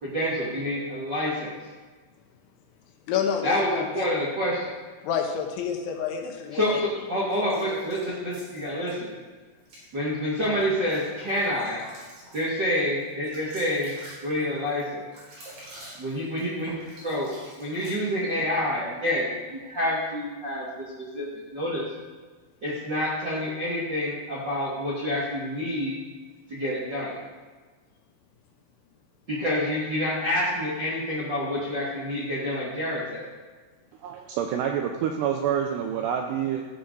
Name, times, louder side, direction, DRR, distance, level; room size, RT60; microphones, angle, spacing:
voice 1, 0.0-1.5 3.4-4.7 6.5-9.1 9.9-11.8 12.3-13.9 14.2-15.0 16.0-21.9 22.6-26.0 26.5-27.2 29.3-33.3, left 1 dB, 55° right, -7 dB, 1.2 m, -28 dB
voice 2, 3.1-4.1 5.0-6.8, left 7 dB, 75° left, 3 dB, 3.2 m, -28 dB
sound 1, 7.3-8.9 9.6-9.9 10.4-18.4, right 1 dB, 40° right, 5.0 m, -48 dB
voice 3, 34.0-36.6, right 8 dB, 80° right, 3 dB, 2.4 m, -27 dB
14.0 x 8.2 x 3.9 m, 1.4 s
omnidirectional pair, 5.6 m